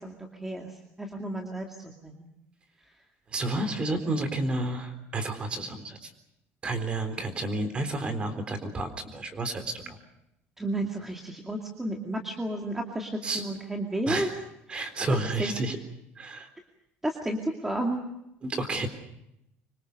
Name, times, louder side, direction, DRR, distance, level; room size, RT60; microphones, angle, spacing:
voice 1, 0.0-2.3 3.6-3.7 10.6-14.3 14.7-15.5 17.0-18.0, right 1 dB, 5° right, 1 dB, 2.4 m, -32 dB
voice 2, 3.3-6.1 6.6-10.0 13.2-13.4 14.1-14.3 14.7-15.8 16.2-16.5 18.4-18.9, right 2 dB, 20° right, 9 dB, 3.8 m, -31 dB
25.5 x 24.5 x 6.7 m, 0.82 s
cardioid pair, 175°, 5 cm